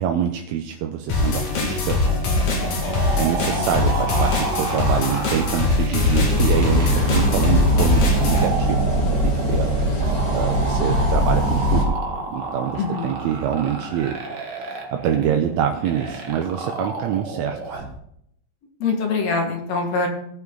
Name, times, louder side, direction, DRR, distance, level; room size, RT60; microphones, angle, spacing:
voice 1, 0.0-2.0 2.6-12.0 12.3-14.2 14.6-17.6, right 9 dB, 80° right, 5 dB, 1.9 m, -26 dB
sound 1, 1.1-8.5, left 2 dB, 90° left, 3.6 m, -22 dB
sound 2, 2.0-18.0, right 3 dB, 45° right, 1.6 m, -31 dB
sound 3, 6.0-11.8, equal, 40° left, 2.2 m, -20 dB
voice 2, 12.8-13.1 18.8-20.1, left 4 dB, 65° left, 2 dB, 2.8 m, -23 dB
17.0 x 5.9 x 3.8 m, 0.73 s
omnidirectional pair, 3.5 m